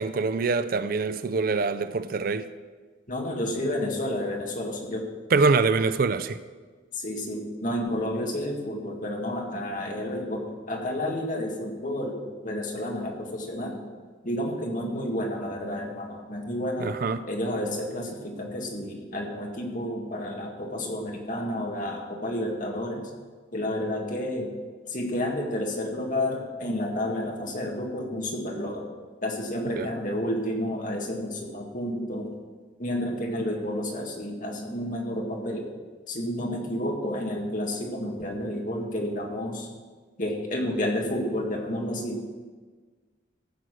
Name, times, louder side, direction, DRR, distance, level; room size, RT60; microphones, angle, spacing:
voice 1, 0.0-2.5 5.3-6.4 16.8-17.2 29.8-29.9, right 4 dB, 50° right, 0.4 m, -24 dB
voice 2, 3.1-5.1 6.9-13.8 14.2-16.9 17.3-23.1 23.5-24.5 24.9-28.9 29.2-32.3 32.8-35.7 36.1-39.7 40.2-42.2, left 1 dB, 45° left, 1.9 m, -30 dB
15.0 x 6.6 x 6.2 m
head